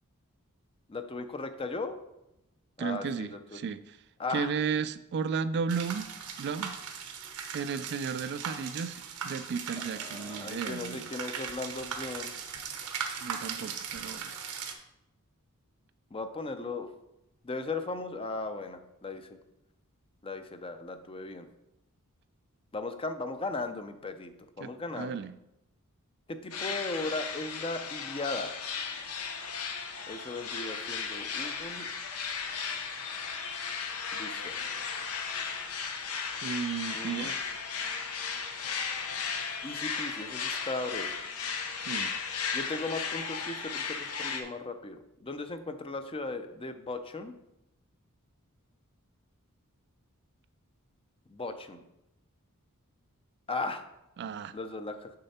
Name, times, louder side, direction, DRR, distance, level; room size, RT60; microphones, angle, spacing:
voice 1, 0.9-2.0 2.8-3.6 4.2-4.5 9.8-12.3 16.1-16.9 17.4-19.2 20.2-21.5 22.7-24.3 24.6-25.2 26.3-28.6 30.1-31.9 34.1-34.5 36.9-37.3 39.6-41.1 42.5-47.3 51.3-51.8 53.5-53.8 54.5-55.1, left 3 dB, 25° left, 9 dB, 0.6 m, -37 dB
voice 2, 2.8-4.0 4.3-6.1 6.4-6.8 7.5-9.0 9.2-11.1 13.2-14.3 24.6-25.3 36.4-37.4 41.7-42.1 54.2-54.5, right 6 dB, 50° right, 13 dB, 0.3 m, -34 dB
sound 1, 5.7-14.7, right 6 dB, 80° right, 0.9 m, -39 dB
sound 2, 26.5-44.4, left 6 dB, 75° left, 0.9 m, -35 dB
6.7 x 6.6 x 4.2 m, 0.87 s
head